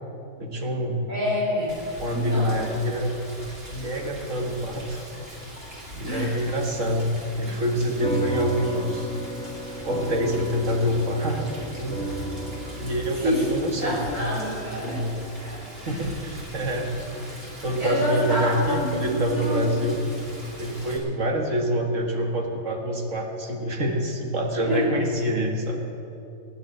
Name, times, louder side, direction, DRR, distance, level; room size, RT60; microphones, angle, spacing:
voice 1, 0.4-1.1 2.0-3.1 3.7-5.0 5.9-9.1 9.8-11.5 11.8-12.0 12.8-14.2 14.8-15.1 15.8-16.9 17.6-20.0 20.6-25.8, equal, 55° right, 2 dB, 1.8 m, -26 dB
voice 2, 1.1-1.8 2.1-2.7 6.0-6.4 13.1-13.5 13.8-15.0 15.4-16.1 17.8-19.7 24.6-24.9, left 1 dB, 85° right, -5 dB, 5.2 m, -27 dB
Rain, 1.7-21.0, right 1 dB, 40° right, 3.1 m, -42 dB
sound 1, 8.0-16.8, right 1 dB, 5° left, 1.6 m, -34 dB
15.0 x 9.9 x 7.8 m, 2.6 s
omnidirectional pair, 1.5 m